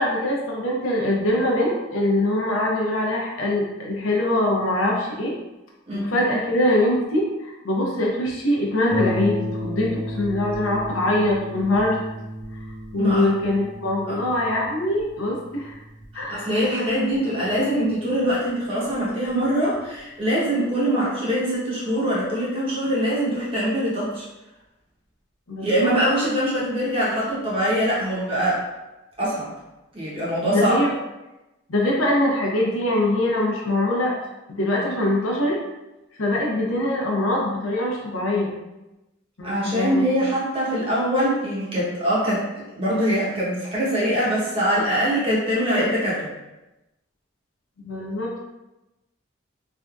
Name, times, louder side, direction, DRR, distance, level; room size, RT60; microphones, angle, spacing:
voice 1, 0.0-5.3 5.9-12.0 12.5-12.6 12.9-15.8 16.1-16.6 25.5-25.9 30.4-30.9 31.7-34.1 34.5-35.6 36.2-38.5 39.4-40.1 47.8-48.4, left 1 dB, 80° left, -2 dB, 0.7 m, -23 dB
Harp, 8.9-18.1 18.9-19.0 19.5-19.6, equal, 60° left, 1.0 m, -33 dB
voice 2, 16.1-24.3 25.6-28.6 29.2-29.5 29.9-30.8 39.4-46.3, equal, 30° right, -7 dB, 0.9 m, -23 dB
3.4 x 2.5 x 2.3 m, 1.0 s
head